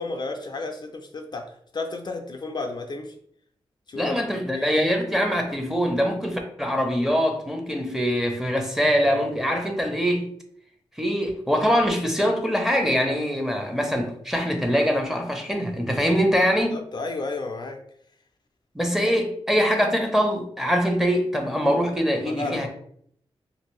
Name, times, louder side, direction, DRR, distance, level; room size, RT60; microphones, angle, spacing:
voice 1, 0.0-3.1 3.9-4.3 4.5-4.7 16.7-17.8 22.3-22.7, left 3 dB, 45° left, 4 dB, 0.4 m, -32 dB
voice 2, 4.0-10.3 11.0-16.8 18.7-22.7, equal, 5° right, 3 dB, 0.6 m, -23 dB
2.6 x 2.6 x 3.0 m, 0.66 s
cardioid pair, 70°, 10 cm